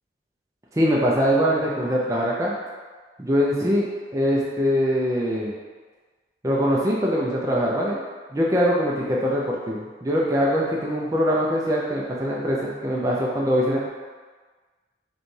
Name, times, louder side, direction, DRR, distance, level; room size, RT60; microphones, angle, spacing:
voice 1, 0.7-2.5 3.2-5.5 6.4-8.0 8.3-13.9, equal, 15° right, -4 dB, 0.4 m, -22 dB
5.0 x 2.3 x 3.2 m, 1.4 s
head